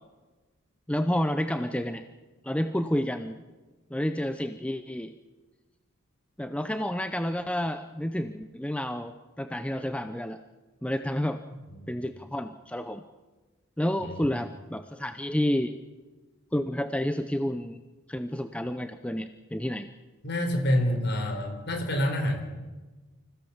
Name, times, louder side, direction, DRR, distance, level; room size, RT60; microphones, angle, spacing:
voice 1, 0.9-2.0 2.4-3.4 3.9-5.1 6.4-10.4 10.8-11.4 11.9-13.0 13.8-15.7 16.5-17.8 18.1-19.9, equal, 5° left, 9 dB, 0.7 m, -30 dB
voice 2, 20.2-22.4, left 1 dB, 50° left, 5 dB, 4.3 m, -27 dB
26.0 x 16.5 x 7.4 m, 1.2 s
head